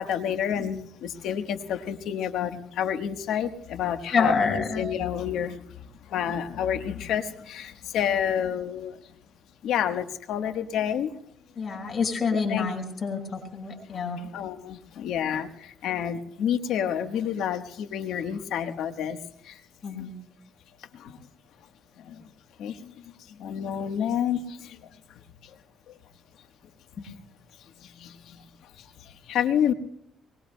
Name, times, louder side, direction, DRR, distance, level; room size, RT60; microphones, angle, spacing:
voice 1, 0.0-9.0 9.6-11.2 12.3-12.7 13.9-19.2 19.4-19.6 19.9-20.1 20.9-21.2 22.0-22.3 22.6-25.6 25.9-26.0 27.0-27.1 27.8-29.7, left 9 dB, 85° left, 8 dB, 1.2 m, -30 dB
voice 2, 4.1-4.8 11.6-14.2 19.8-20.1, left 5 dB, 45° left, 1 dB, 5.3 m, -27 dB
24.0 x 21.0 x 2.2 m, 0.72 s
cardioid pair, 90°, 0 cm